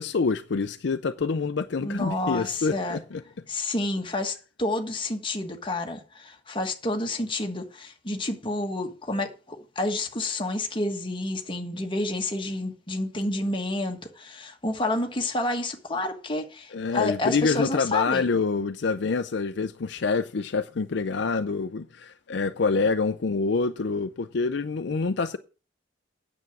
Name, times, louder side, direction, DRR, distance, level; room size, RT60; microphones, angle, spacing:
voice 1, 0.0-3.2 16.7-25.4, left 4 dB, 65° left, 0.5 m, -26 dB
voice 2, 1.8-3.0 3.5-18.3, left 2 dB, 25° left, 1.5 m, -29 dB
9.4 x 7.1 x 6.0 m
head